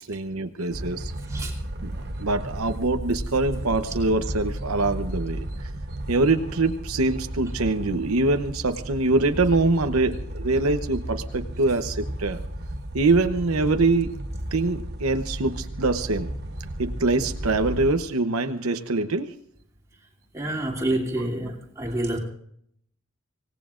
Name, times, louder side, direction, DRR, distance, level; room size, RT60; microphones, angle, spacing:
voice 1, 0.1-1.1 1.8-5.5 6.1-12.4 12.9-14.2 14.5-16.3 16.8-19.3, right 3 dB, 85° right, 0.9 m, -24 dB
sound 1, 0.7-17.9, right 1 dB, 50° right, 1.2 m, -34 dB
voice 2, 20.3-22.2, right 1 dB, 15° right, 2.7 m, -28 dB
25.5 x 18.0 x 2.5 m
head